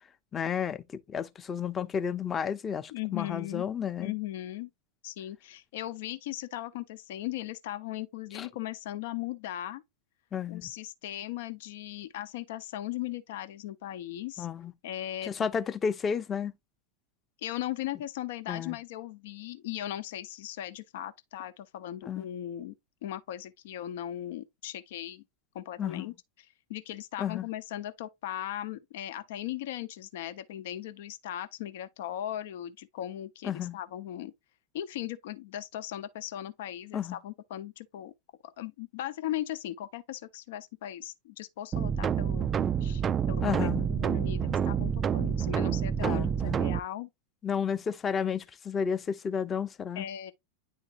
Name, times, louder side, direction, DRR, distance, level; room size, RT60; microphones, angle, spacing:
voice 1, 0.3-4.1 8.3-8.5 10.3-10.7 14.4-14.7 15.2-16.5 18.5-18.8 22.1-22.3 25.8-26.0 27.2-27.5 33.4-33.8 36.9-37.2 43.4-43.8 46.0-46.6 47.4-50.1, left 7 dB, 25° left, 0.7 m, -32 dB
voice 2, 2.9-3.7 4.0-4.7 5.0-9.8 10.5-14.5 14.8-15.5 17.4-22.7 23.0-25.2 25.5-26.1 26.7-34.3 34.7-38.1 38.6-42.5 42.8-47.1 49.9-50.3, left 12 dB, 65° left, 0.7 m, -38 dB
sound 1, 41.7-46.8, right 8 dB, 30° right, 0.3 m, -28 dB
9.7 x 3.6 x 2.9 m
hypercardioid pair, 100°, 0 cm